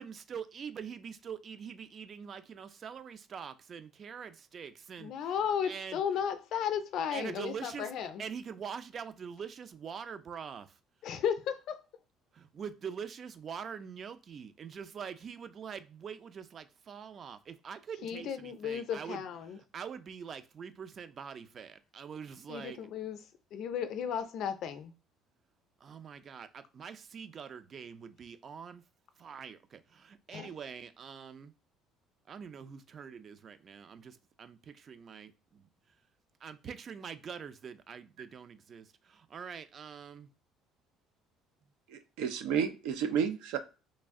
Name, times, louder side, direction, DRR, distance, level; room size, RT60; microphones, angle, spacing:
voice 1, 0.0-5.3 5.6-6.0 7.1-7.9 8.2-10.8 12.3-22.8 25.8-28.8 29.2-31.5 32.3-34.5 34.9-35.7 36.4-40.3, right 7 dB, 35° right, 0.4 m, -44 dB
voice 2, 5.0-8.2 11.0-11.8 18.0-19.6 22.5-23.2 23.5-24.9 30.3-30.5, left 8 dB, 60° left, 0.5 m, -34 dB
voice 3, 41.9-43.6, right 7 dB, 90° right, 0.6 m, -31 dB
3.1 x 2.5 x 3.6 m
cardioid pair, 135°, 0 cm